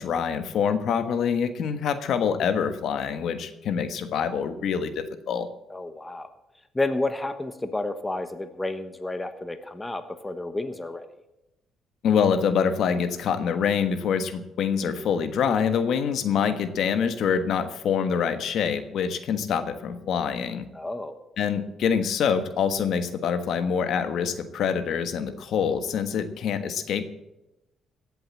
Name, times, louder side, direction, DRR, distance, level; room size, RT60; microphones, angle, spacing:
voice 1, 0.0-5.5 12.0-20.7 21.4-27.0, left 7 dB, 65° left, 9 dB, 1.3 m, -25 dB
voice 2, 5.7-6.3 6.7-11.1 20.7-21.2, left 2 dB, 15° left, 9 dB, 1.1 m, -31 dB
16.0 x 7.8 x 7.4 m, 0.93 s
cardioid pair, 125°, 0 cm